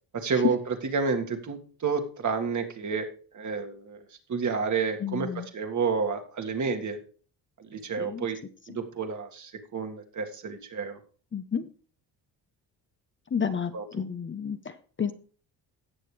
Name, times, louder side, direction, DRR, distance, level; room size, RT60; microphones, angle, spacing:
voice 1, 0.1-0.6 0.9-3.1 3.3-4.0 4.3-5.3 5.5-7.0 7.6-8.4 8.7-11.0 13.7-13.8, right 5 dB, 45° right, 5 dB, 1.9 m, -30 dB
voice 2, 5.0-5.5 8.0-8.3 8.7-8.8 11.3-11.7 13.3-15.1, left 7 dB, 30° left, 10 dB, 0.8 m, -31 dB
17.0 x 6.7 x 3.3 m, 0.41 s
cardioid pair, 85°, 41 cm